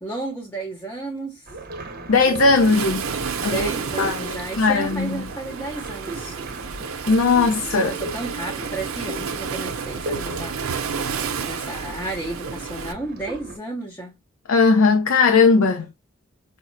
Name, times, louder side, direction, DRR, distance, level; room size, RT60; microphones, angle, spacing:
voice 1, 0.0-1.5 3.4-6.4 7.7-10.9 11.2-14.2, right 2 dB, 10° left, 0.7 m, -33 dB
sound 1, 1.5-13.6, right 1 dB, 45° right, 0.8 m, -37 dB
voice 2, 2.1-3.0 3.4-3.7 4.0-5.2 7.1-7.9 14.5-15.9, left 4 dB, 80° left, 0.6 m, -18 dB
Waves surf, 2.6-12.9, right 6 dB, 85° right, 0.6 m, -31 dB
5.2 x 2.0 x 2.5 m
head